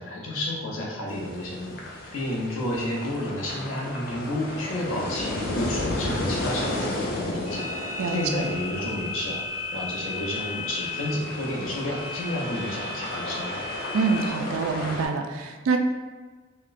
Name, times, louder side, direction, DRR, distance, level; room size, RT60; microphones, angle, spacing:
voice 1, 0.0-9.4 9.7-13.6, left 1 dB, 80° left, -3 dB, 0.7 m, -31 dB
sound 1, 1.1-15.1, left 1 dB, 45° left, 0.4 m, -34 dB
sound 2, 7.5-14.3, left 3 dB, 35° right, 0.5 m, -35 dB
voice 2, 8.0-8.5 13.9-15.8, right 5 dB, 90° right, 4 dB, 0.3 m, -26 dB
4.1 x 2.1 x 2.5 m, 1.4 s
head